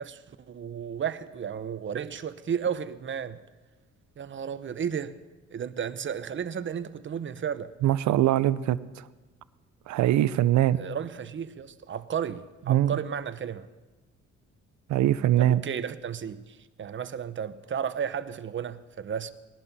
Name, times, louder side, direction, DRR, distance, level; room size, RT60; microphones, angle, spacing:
voice 1, 0.0-3.4 4.2-5.1 5.5-7.7 10.8-13.7 15.4-19.3, right 8 dB, 40° right, 0.8 m, -33 dB
voice 2, 7.8-8.8 9.9-10.8 12.7-12.9 14.9-15.6, right 13 dB, 70° right, 0.6 m, -22 dB
19.0 x 11.5 x 4.1 m
cardioid pair, 90°, 30 cm